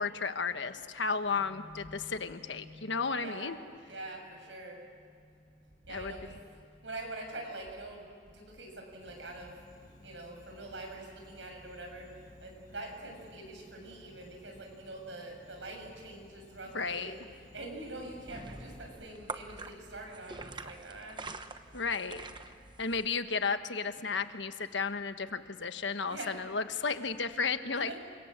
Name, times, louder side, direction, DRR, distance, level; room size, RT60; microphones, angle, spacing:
voice 1, 0.0-3.6 5.9-6.3 16.7-17.1 21.7-22.3 22.8-27.9, left 5 dB, 75° left, 9 dB, 1.3 m, -33 dB
voice 2, 1.3-3.6 3.9-8.0 8.3-9.6 10.0-12.1 12.4-17.2 17.5-21.2 22.0-22.2 26.0-26.4 27.7-27.9, right 2 dB, 75° right, 2 dB, 7.1 m, -45 dB
Insect, 9.0-18.9, left 1 dB, 40° left, 7.6 m, -57 dB
sound 1, 18.0-23.1, right 3 dB, 25° right, 1.0 m, -45 dB
29.5 x 26.0 x 7.5 m, 2.4 s
head